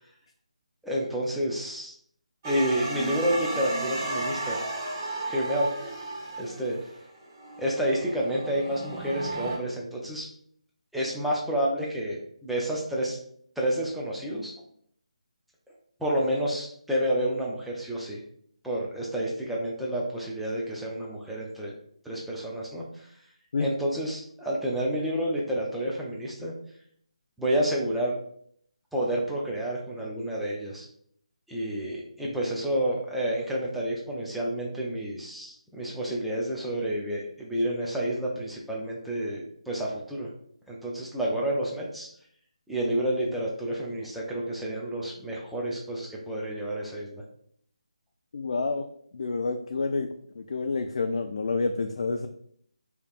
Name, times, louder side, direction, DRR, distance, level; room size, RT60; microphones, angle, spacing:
voice 1, 0.8-1.9 2.4-4.6 5.3-5.7 6.4-6.9 7.6-10.2 10.9-13.2 13.6-14.5 16.0-18.2 18.6-21.7 22.0-23.1 23.6-26.5 27.4-28.2 28.9-30.9 31.5-40.3 40.7-42.1 42.7-47.2, right 1 dB, ahead, -5 dB, 0.5 m, -29 dB
sound 1, 2.4-9.6, right 2 dB, 30° right, 0.9 m, -34 dB
voice 2, 48.3-48.8 49.1-50.1 50.3-52.3, left 3 dB, 55° left, 6 dB, 0.3 m, -28 dB
4.9 x 2.9 x 2.4 m, 0.65 s
figure-of-eight pair, 155°, 4 cm